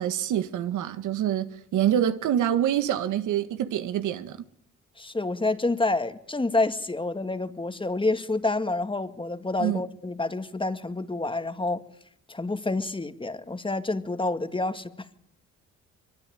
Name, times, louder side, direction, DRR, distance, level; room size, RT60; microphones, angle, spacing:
voice 1, 0.0-4.4 9.6-9.8, right 10 dB, 80° right, 1.8 m, -26 dB
voice 2, 5.0-11.8 12.3-15.1, left 2 dB, 15° left, 2.1 m, -28 dB
24.0 x 23.0 x 9.2 m
cardioid pair, 90°, 30 cm